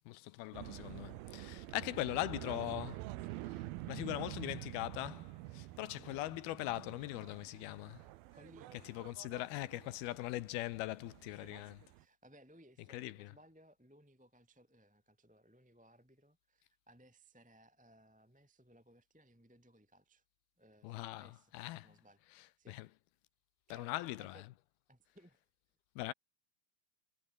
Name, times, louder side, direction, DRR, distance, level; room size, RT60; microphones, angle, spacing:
voice 1, 0.1-3.0 3.5-8.0 8.9-11.8 12.9-13.3 20.8-21.9 22.4-22.9 23.7-24.4 26.0-26.1, left 17 dB, 80° left, 2.5 m, -41 dB
sound 1, 0.5-12.0, right 17 dB, 75° right, 2.4 m, -48 dB
voice 2, 1.8-2.3 8.3-8.8 11.3-20.2 20.6-21.5 21.8-22.9 23.7-24.4 24.9-25.4, equal, ahead, 2.3 m, -63 dB
omnidirectional pair, 4.9 m